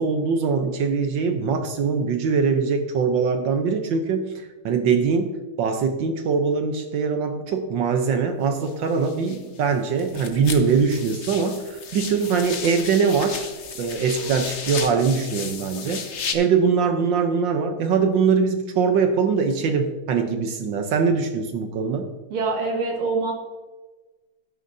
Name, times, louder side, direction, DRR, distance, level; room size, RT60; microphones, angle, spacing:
voice 1, 0.0-13.5 13.8-16.0 16.3-22.1, right 5 dB, 70° right, 6 dB, 1.4 m, -22 dB
sound 1, 8.6-9.7 10.0-16.3, left 6 dB, 55° left, 0.8 m, -34 dB
voice 2, 22.3-23.3, right 3 dB, 90° right, -1 dB, 2.9 m, -24 dB
13.0 x 9.7 x 2.7 m, 1.2 s
omnidirectional pair, 2.3 m